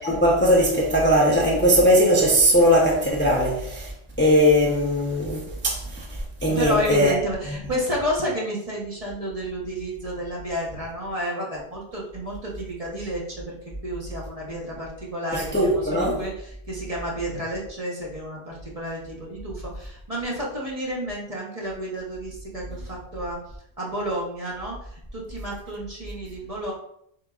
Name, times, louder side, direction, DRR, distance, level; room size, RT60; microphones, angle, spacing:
voice 1, 0.0-3.9 4.2-6.0 6.4-7.1 15.3-16.2, equal, 10° left, 0.7 m, -19 dB
voice 2, 6.5-13.5 13.8-23.4 23.8-26.7, equal, 35° right, 1.2 m, -31 dB
7.7 x 2.8 x 2.4 m
omnidirectional pair, 1.1 m